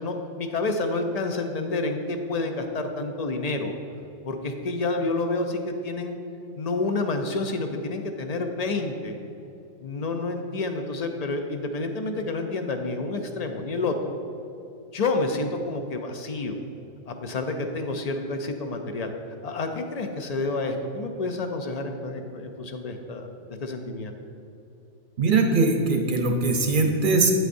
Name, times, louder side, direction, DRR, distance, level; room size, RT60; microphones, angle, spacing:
voice 1, 0.0-3.7 4.2-6.2 6.6-9.2 9.8-14.1 14.9-16.6 17.1-19.1 19.4-23.3 23.6-24.2, left 3 dB, 50° left, 5 dB, 0.5 m, -29 dB
voice 2, 25.2-27.3, right 3 dB, 50° right, 3 dB, 0.8 m, -21 dB
8.7 x 8.0 x 2.6 m, 2.9 s
omnidirectional pair, 1.2 m